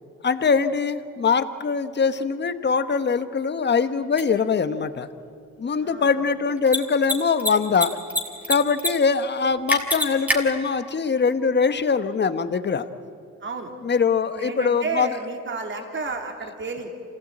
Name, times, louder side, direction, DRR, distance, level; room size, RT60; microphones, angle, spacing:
voice 1, 0.2-5.1 5.6-8.0 8.5-12.9 13.8-15.1, left 5 dB, 35° left, 11 dB, 1.2 m, -22 dB
Mechanisms, 4.2-4.3 6.6-6.8 7.0-7.1 7.4-8.2 8.4-8.9 9.2-9.3 9.7-10.4, equal, 5° right, 3.2 m, -23 dB
voice 2, 5.8-6.2 13.4-13.7 14.4-16.9, right 3 dB, 40° right, 4 dB, 3.0 m, -31 dB
26.5 x 17.0 x 8.8 m, 2.5 s
cardioid pair, 90°, 30 cm